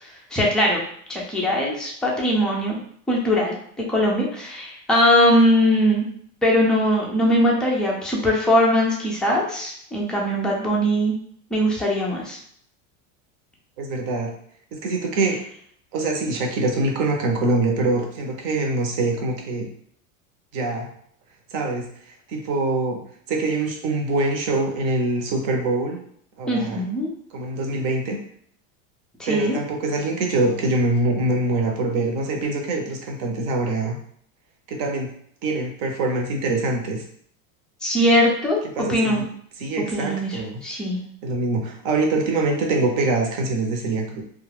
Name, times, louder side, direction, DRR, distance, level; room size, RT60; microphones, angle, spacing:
voice 1, 0.0-0.8 1.1-2.8 3.1-6.1 6.4-11.1 11.5-12.4 26.5-27.1 29.2-29.6 37.8-39.2 39.9-41.0, equal, ahead, -3 dB, 0.3 m, -21 dB
voice 2, 13.8-14.3 14.7-15.4 15.9-19.7 20.5-20.9 21.5-21.9 22.3-23.0 23.3-26.0 26.4-26.9 27.3-28.2 29.3-34.0 34.7-35.1 35.4-37.0 38.8-39.3 39.6-40.5 41.2-44.2, right 2 dB, 55° right, 2 dB, 0.8 m, -24 dB
2.3 x 2.2 x 3.2 m, 0.64 s
supercardioid pair, 130°, 40 cm